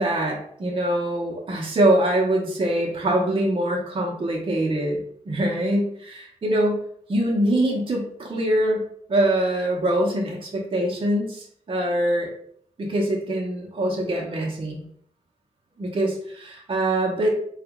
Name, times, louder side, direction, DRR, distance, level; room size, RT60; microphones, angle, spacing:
voice 1, 0.0-5.0 5.3-6.8 7.1-8.8 9.1-12.3 12.8-14.8 15.8-17.3, right 1 dB, 40° right, -2 dB, 0.8 m, -23 dB
3.9 x 2.4 x 3.5 m, 0.64 s
wide cardioid pair, 145°, 14 cm